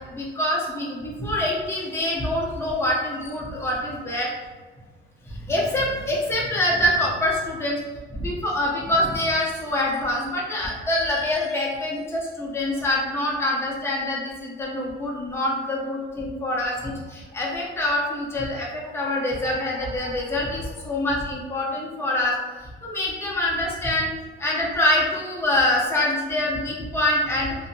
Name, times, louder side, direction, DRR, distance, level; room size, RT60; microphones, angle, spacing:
voice 1, 0.1-4.3 5.5-7.8 8.1-22.3 22.8-24.1 24.4-27.5, left 1 dB, 10° left, -4 dB, 0.7 m, -25 dB
2.6 x 2.6 x 2.6 m, 1.3 s
cardioid pair, 90°, 20 cm